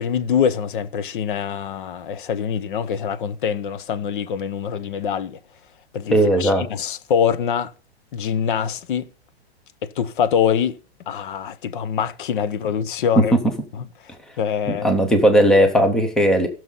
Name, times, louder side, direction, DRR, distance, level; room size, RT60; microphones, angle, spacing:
voice 1, 0.0-5.4 5.9-7.7 8.1-9.1 9.8-10.8 11.1-13.3 13.7-14.9, left 8 dB, 50° left, 0.8 m, -24 dB
voice 2, 6.1-6.6 14.8-16.5, equal, ahead, 0.6 m, -16 dB
15.0 x 6.4 x 3.9 m
hypercardioid pair, 160°, 32 cm